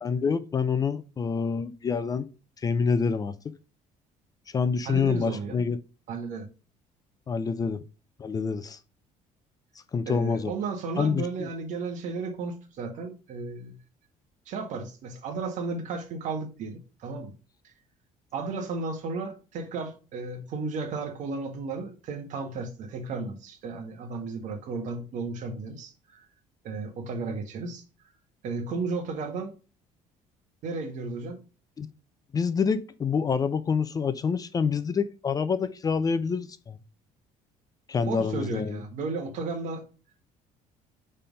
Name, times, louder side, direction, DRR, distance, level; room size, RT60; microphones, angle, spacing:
voice 1, 0.0-2.3 2.6-3.5 4.5-5.8 7.3-7.8 8.2-8.8 9.9-10.5 11.0-11.5 31.8-31.9 32.3-36.8 37.9-38.8, left 5 dB, 25° left, 0.5 m, -27 dB
voice 2, 4.8-5.6 6.1-6.5 10.0-13.8 14.5-17.3 17.6-17.7 18.3-26.2 26.6-27.8 28.4-29.5 30.6-31.4 38.0-39.8, right 4 dB, 65° right, 1.7 m, -34 dB
5.5 x 4.2 x 5.3 m
cardioid pair, 135°, 14 cm